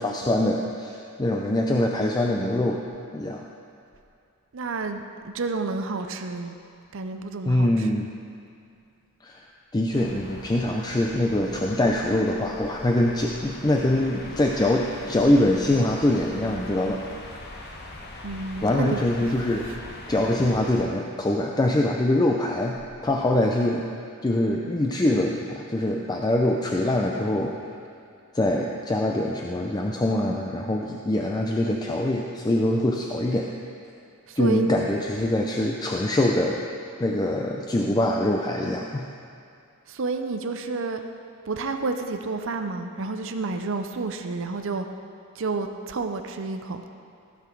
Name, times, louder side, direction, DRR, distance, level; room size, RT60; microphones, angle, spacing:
voice 1, 0.0-2.8 3.1-3.5 7.4-8.1 9.2-9.4 9.7-17.1 18.6-19.7 20.1-23.9 24.2-27.6 28.3-33.5 34.4-36.6 37.0-39.1, left 1 dB, 20° left, 0 dB, 0.5 m, -24 dB
voice 2, 4.5-6.5 6.9-7.9 18.2-19.3 34.3-34.8 39.9-41.0 41.5-44.9 45.4-46.8, right 3 dB, 65° right, 6 dB, 0.6 m, -30 dB
sound 1, 9.9-20.8, left 2 dB, 50° left, 1.0 m, -41 dB
15.5 x 6.0 x 4.5 m, 2.5 s
head